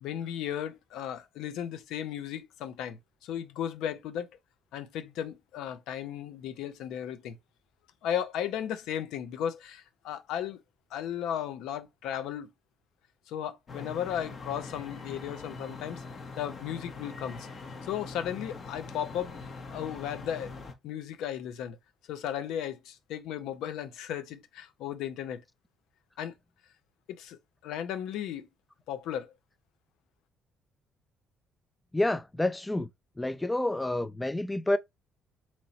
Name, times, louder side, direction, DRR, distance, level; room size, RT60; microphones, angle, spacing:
voice 1, 0.0-4.3 4.7-7.4 8.0-10.6 10.9-12.5 13.3-16.0 16.4-17.5 17.9-20.5 20.8-21.8 22.1-25.4 26.2-26.3 27.1-28.5 28.9-29.3, left 10 dB, 85° left, 0.5 m, -35 dB
sound 1, 13.7-20.7, left 3 dB, 45° left, 0.9 m, -43 dB
voice 2, 31.9-32.9 33.2-34.8, left 1 dB, 10° left, 0.4 m, -28 dB
2.9 x 2.8 x 4.0 m
cardioid pair, 100°, 0 cm